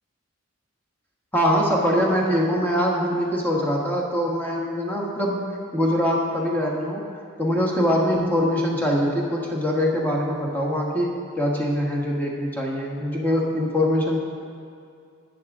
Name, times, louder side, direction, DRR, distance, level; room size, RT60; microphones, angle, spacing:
voice 1, 1.3-5.4 5.7-7.1 7.4-14.2, equal, 10° left, -3 dB, 1.4 m, -23 dB
11.0 x 9.4 x 3.6 m, 2.4 s
head